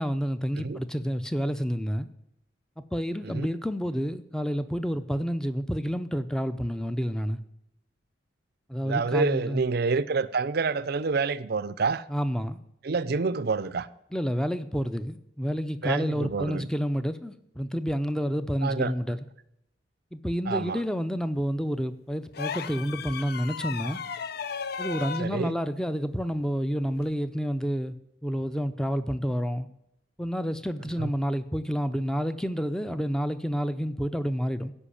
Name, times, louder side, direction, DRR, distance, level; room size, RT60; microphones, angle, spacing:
voice 1, 0.0-2.1 2.8-7.4 8.7-9.7 12.1-12.6 14.1-19.2 20.1-24.0 24.8-28.0 28.2-29.7 30.2-34.7, equal, 5° left, 0.6 m, -29 dB
voice 2, 8.8-12.0 12.8-13.9 15.8-16.7 18.6-18.9 20.5-20.8 25.2-25.6 31.0-31.1, right 4 dB, 55° right, 0.5 m, -28 dB
sound 1, 22.3-25.3 27.0-27.1, left 6 dB, 55° left, 0.6 m, -35 dB
15.5 x 5.7 x 8.4 m
head